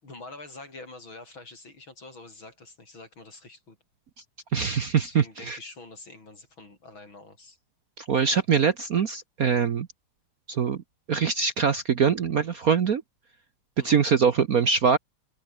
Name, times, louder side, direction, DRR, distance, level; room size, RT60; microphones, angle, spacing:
voice 1, 0.0-3.8 5.0-7.6 13.8-14.0, left 2 dB, 65° left, 7.5 m, -46 dB
voice 2, 4.5-5.6 8.0-9.9 10.5-10.8 11.1-13.0 13.8-15.0, right 6 dB, 50° right, 1.3 m, -23 dB
omnidirectional pair, 2.4 m